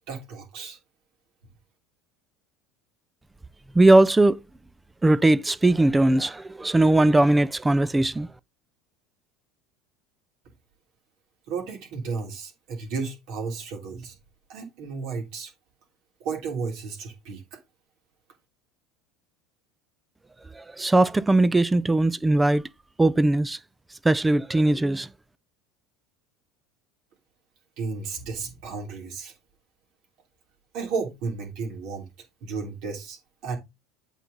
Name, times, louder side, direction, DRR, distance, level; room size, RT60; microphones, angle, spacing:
voice 1, 0.1-0.8 11.5-14.2 14.5-15.5 16.2-17.6 27.8-29.3 30.7-32.1 32.4-33.6, right 4 dB, 65° right, 3.0 m, -33 dB
voice 2, 3.7-4.4 5.0-8.3 20.6-22.6 23.0-23.6 24.0-25.1, right 2 dB, 15° right, 0.4 m, -19 dB
8.1 x 4.5 x 4.0 m
hypercardioid pair, 90°, 0 cm